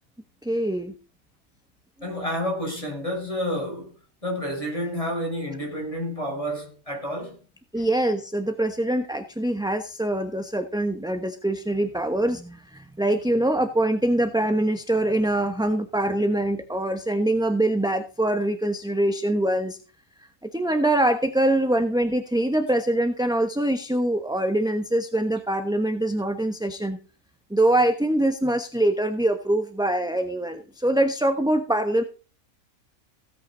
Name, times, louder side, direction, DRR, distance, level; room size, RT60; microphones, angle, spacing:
voice 1, 0.4-0.9 7.7-19.8 20.5-27.0 27.5-32.0, right 1 dB, 5° right, 1.0 m, -24 dB
voice 2, 2.0-3.9 4.2-7.4 7.8-7.9, equal, 25° left, 7.2 m, -29 dB
17.0 x 8.9 x 4.0 m
omnidirectional pair, 1.5 m